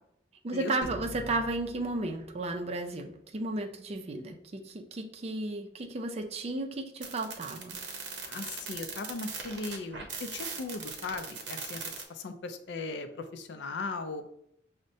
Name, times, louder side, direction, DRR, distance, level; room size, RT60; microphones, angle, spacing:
voice 1, 0.4-7.8, right 2 dB, 35° right, 4 dB, 0.4 m, -34 dB
sound 1, 0.8-3.4, equal, 45° left, 0.8 m, -46 dB
sound 2, 7.0-12.0, right 5 dB, 80° right, 0.7 m, -39 dB
voice 2, 8.3-11.8 12.1-14.2, left 3 dB, 75° left, 8 dB, 0.4 m, -38 dB
6.1 x 2.1 x 2.6 m, 0.73 s
head